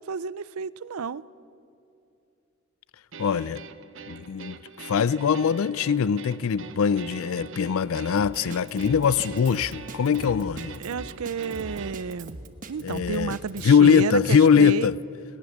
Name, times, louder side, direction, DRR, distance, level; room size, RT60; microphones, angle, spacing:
voice 1, 0.1-1.2 10.6-12.4 12.7-14.9, right 5 dB, 80° right, 19 dB, 0.5 m, -31 dB
sound 1, 3.1-11.9, right 5 dB, 60° right, 0.9 m, -43 dB
voice 2, 3.2-3.6 4.1-10.8 12.8-13.4 13.6-14.9, left 6 dB, 75° left, 18 dB, 0.4 m, -22 dB
Drum kit, 8.2-13.7, right 2 dB, 35° right, 1.1 m, -40 dB
21.0 x 19.0 x 7.3 m, 2.7 s
head